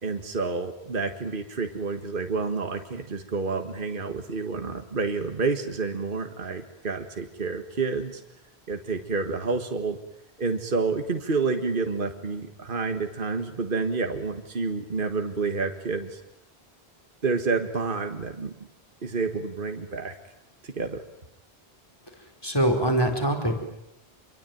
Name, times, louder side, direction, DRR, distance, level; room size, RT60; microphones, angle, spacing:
voice 1, 0.0-8.2 8.7-10.0 10.4-16.2 17.2-18.7 19.0-20.2 20.6-21.0, right 4 dB, 60° right, 6 dB, 1.8 m, -29 dB
voice 2, 22.4-23.5, right 1 dB, 25° left, 3 dB, 4.7 m, -23 dB
27.0 x 23.5 x 9.2 m, 0.83 s
omnidirectional pair, 1.0 m